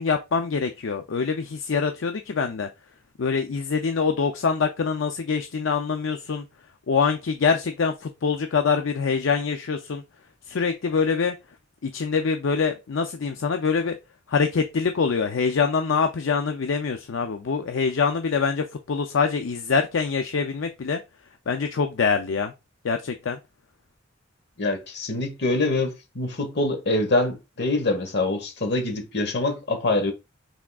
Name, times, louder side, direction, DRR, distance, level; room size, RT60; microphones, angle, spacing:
voice 1, 0.0-2.7 3.2-6.4 6.9-10.0 10.5-11.3 11.8-14.0 14.3-21.0 21.5-22.5 22.8-23.4, left 5 dB, 75° left, 0.5 m, -24 dB
voice 2, 24.6-30.1, left 2 dB, 60° left, 1.2 m, -25 dB
5.9 x 3.6 x 2.3 m
head